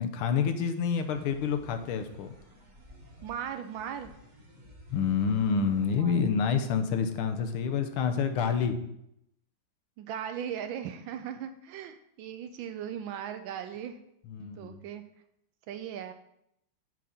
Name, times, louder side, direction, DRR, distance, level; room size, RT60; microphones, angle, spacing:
voice 1, 0.0-2.3 4.9-8.8 14.3-14.8, left 6 dB, 85° left, 7 dB, 1.6 m, -28 dB
sound 1, 1.0-6.0, equal, 25° right, 1.0 m, -54 dB
voice 2, 3.2-4.1 6.0-6.4 8.4-8.6 10.0-14.0 14.4-15.0 15.7-16.1, right 9 dB, 75° right, 8 dB, 1.2 m, -38 dB
7.4 x 4.1 x 5.8 m, 0.78 s
omnidirectional pair, 2.4 m